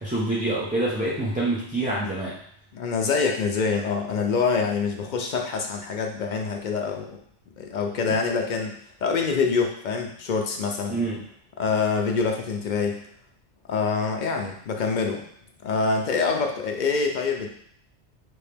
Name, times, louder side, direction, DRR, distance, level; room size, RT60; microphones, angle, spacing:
voice 1, 0.0-2.3 10.9-11.2, right 2 dB, 10° right, -8 dB, 0.5 m, -26 dB
voice 2, 2.7-7.2 7.6-11.0 11.6-13.0 13.7-15.3 15.6-17.5, left 5 dB, 60° left, 2 dB, 0.5 m, -25 dB
3.5 x 2.8 x 3.4 m, 0.64 s
omnidirectional pair, 1.2 m